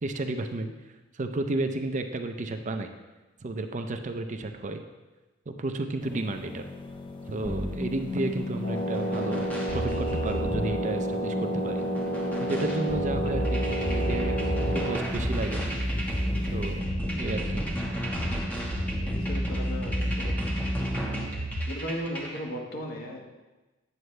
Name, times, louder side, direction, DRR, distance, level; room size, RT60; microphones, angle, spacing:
voice 1, 0.0-2.9 3.4-4.8 5.5-6.7 7.3-11.8 12.4-15.7 16.5-16.9 17.1-17.8, right 2 dB, 40° right, 6 dB, 0.5 m, -32 dB
sound 1, 6.0-16.8, left 3 dB, 25° left, 0.5 m, -44 dB
sound 2, 7.4-22.4, equal, 10° left, 1.3 m, -30 dB
sound 3, 8.6-15.0, right 1 dB, 80° left, 3.1 m, -31 dB
voice 2, 18.8-20.3 21.7-23.2, equal, 50° left, 0 dB, 1.4 m, -36 dB
9.3 x 7.7 x 3.2 m, 1.1 s
head